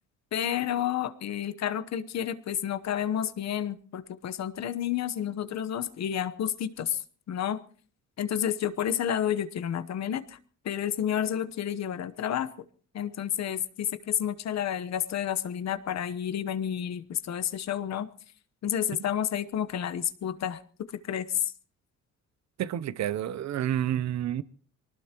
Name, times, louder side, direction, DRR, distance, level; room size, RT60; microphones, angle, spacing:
voice 1, 0.3-7.0 7.3-7.6 8.2-10.4 10.6-12.5 12.9-18.1 18.6-20.6 21.0-21.5, left 10 dB, 60° left, 1.0 m, -30 dB
voice 2, 22.6-24.4, right 11 dB, 65° right, 0.8 m, -29 dB
24.0 x 19.0 x 3.0 m
cardioid pair, 90°, 30 cm